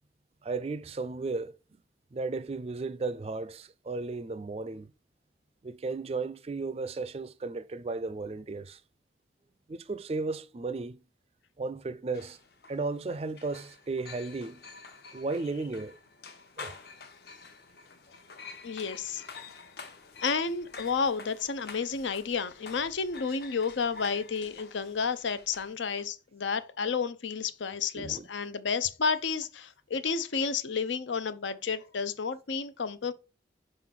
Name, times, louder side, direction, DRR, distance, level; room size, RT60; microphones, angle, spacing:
voice 1, 0.4-1.6 2.1-4.9 5.6-8.8 9.7-11.0 11.6-12.4 12.7-14.6 15.1-16.0 16.6-16.8 27.9-28.3, right 3 dB, 35° right, 0.3 m, -34 dB
sound 1, 12.1-26.0, left 4 dB, 60° left, 0.9 m, -49 dB
voice 2, 18.6-19.3 19.5-19.7 20.2-33.1, left 5 dB, 85° left, 0.7 m, -31 dB
5.1 x 3.8 x 5.8 m
head